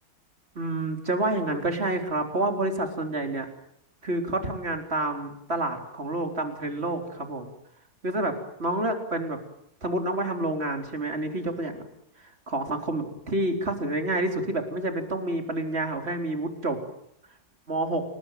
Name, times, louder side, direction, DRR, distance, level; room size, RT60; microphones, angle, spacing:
voice 1, 0.6-3.5 4.0-7.5 8.0-9.4 9.8-11.8 12.2-16.8 17.7-18.0, right 2 dB, 40° right, 5 dB, 4.2 m, -28 dB
29.5 x 20.0 x 9.2 m, 0.74 s
omnidirectional pair, 1.7 m